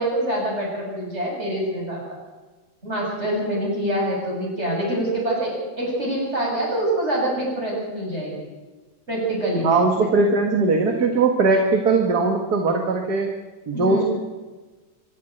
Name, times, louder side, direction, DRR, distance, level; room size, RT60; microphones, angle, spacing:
voice 1, 0.0-2.0 2.8-5.5 5.8-8.3 9.1-9.7 13.7-14.1, right 1 dB, 35° right, -3 dB, 8.2 m, -25 dB
voice 2, 9.6-13.3 13.7-14.0, right 3 dB, 55° right, 3 dB, 2.3 m, -20 dB
25.0 x 11.0 x 9.4 m, 1.2 s
omnidirectional pair, 2.0 m